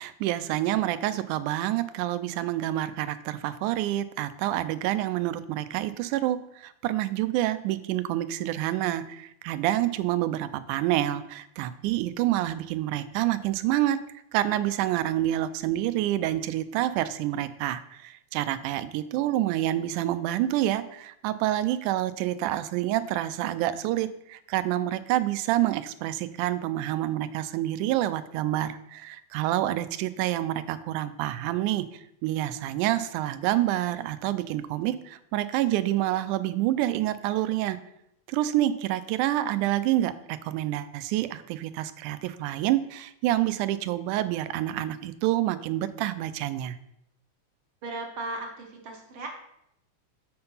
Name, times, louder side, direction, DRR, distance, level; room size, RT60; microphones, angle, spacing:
voice 1, 0.0-14.0 14.3-37.8 38.3-46.8, right 14 dB, 90° right, 13 dB, 2.1 m, -28 dB
voice 2, 47.8-49.3, right 2 dB, 55° right, 1 dB, 1.7 m, -36 dB
7.6 x 4.4 x 5.4 m, 0.76 s
omnidirectional pair, 3.5 m